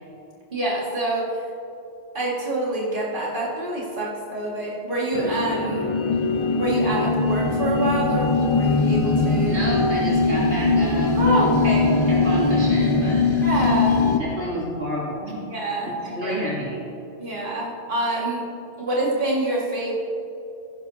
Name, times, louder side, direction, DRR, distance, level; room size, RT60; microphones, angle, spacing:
voice 1, 0.5-1.4 2.1-5.9 6.5-9.6 11.2-12.0 13.4-14.1 15.5-16.3 17.2-18.5 18.8-19.9, right 1 dB, 50° right, -5 dB, 2.4 m, -26 dB
sound 1, 5.1-14.2, left 3 dB, 40° left, 0.4 m, -21 dB
voice 2, 9.4-11.3 12.1-13.3 14.2-15.4 15.9-16.8, equal, 70° right, -7 dB, 3.2 m, -30 dB
16.5 x 10.5 x 2.9 m, 2.8 s
omnidirectional pair, 1.2 m